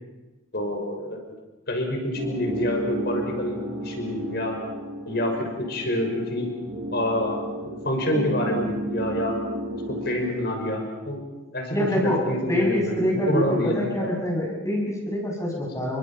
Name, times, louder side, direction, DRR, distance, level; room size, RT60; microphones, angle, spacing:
voice 1, 0.5-1.3 1.7-4.6 5.0-6.5 6.9-9.4 9.7-11.2 11.5-14.2, left 1 dB, 50° left, 3 dB, 5.8 m, -27 dB
sound 1, 2.1-10.3, right 1 dB, 55° right, 4.8 m, -33 dB
voice 2, 11.7-16.0, equal, 15° left, -1 dB, 6.5 m, -25 dB
30.0 x 25.0 x 5.8 m, 1.1 s
head